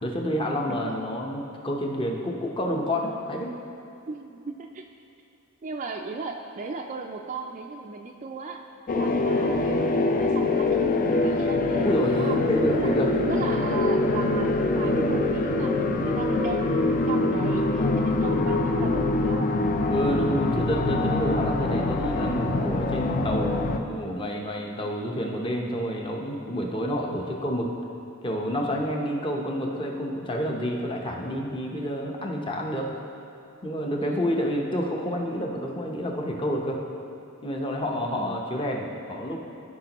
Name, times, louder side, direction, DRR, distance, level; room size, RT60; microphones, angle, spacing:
voice 1, 0.0-3.5 11.8-13.1 17.8-18.1 19.9-27.7 28.2-32.9 33.6-36.8 37.4-39.4, equal, 25° left, 0 dB, 0.8 m, -29 dB
voice 2, 4.1-4.8 5.6-8.6 8.9-12.4 12.7-12.9 13.3-19.6 34.0-34.4 38.0-38.4, right 4 dB, 35° right, 2 dB, 0.4 m, -36 dB
sound 1, 8.9-23.8, left 2 dB, 40° left, 0.4 m, -24 dB
14.5 x 5.2 x 3.0 m, 2.7 s
head